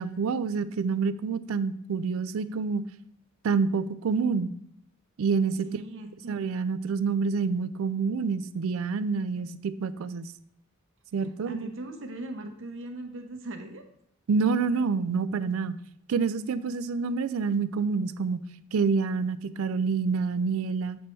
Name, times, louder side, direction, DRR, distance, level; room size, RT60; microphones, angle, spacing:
voice 1, 0.0-2.8 3.4-4.5 5.2-5.8 6.3-10.3 11.1-11.7 14.3-15.8 16.1-18.4 18.7-21.0, right 5 dB, 85° right, 15 dB, 0.4 m, -27 dB
voice 2, 5.6-6.4 11.2-13.8, right 2 dB, 65° right, 4 dB, 0.8 m, -39 dB
7.5 x 3.1 x 4.4 m, 0.71 s
head